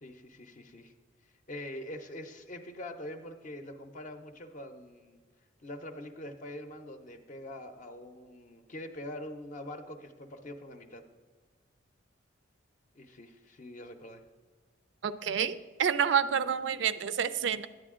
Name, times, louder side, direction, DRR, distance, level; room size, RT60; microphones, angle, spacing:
voice 1, 0.0-0.9 1.5-5.2 5.6-11.0 12.9-14.2, left 1 dB, 45° left, 6 dB, 0.6 m, -44 dB
voice 2, 15.0-17.7, right 7 dB, 70° right, 14 dB, 0.4 m, -28 dB
10.5 x 8.4 x 3.7 m, 1.4 s
head